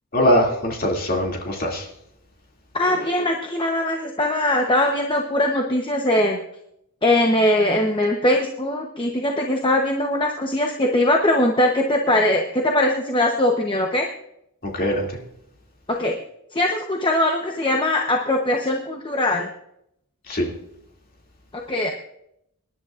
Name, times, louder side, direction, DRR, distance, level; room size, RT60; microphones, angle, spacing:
voice 1, 0.1-1.9 14.7-15.1 20.3-20.5, equal, 40° left, 0 dB, 2.6 m, -21 dB
voice 2, 2.7-6.4 7.0-14.1 15.9-16.1 16.5-19.5 21.5-21.9, left 1 dB, 20° left, 1 dB, 0.9 m, -21 dB
25.5 x 11.0 x 2.5 m, 0.76 s
head